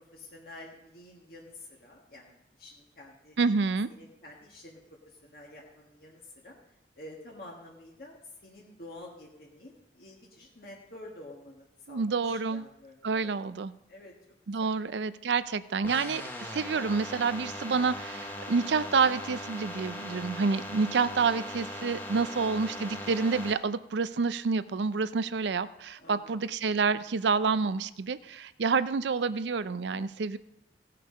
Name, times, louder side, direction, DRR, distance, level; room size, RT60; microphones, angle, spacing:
voice 1, 0.1-3.4 4.0-4.8 5.0-6.6 7.0-13.5 13.9-14.1 14.6-14.7 22.3-22.4 26.0-26.4, left 1 dB, 55° left, -3 dB, 1.7 m, -49 dB
voice 2, 3.4-3.9 11.9-12.6 13.0-13.7 14.5-30.4, right 4 dB, 80° right, 15 dB, 0.5 m, -28 dB
sound 1, 15.8-23.5, left 1 dB, 10° left, 1.2 m, -39 dB
16.5 x 6.7 x 5.2 m, 0.86 s
head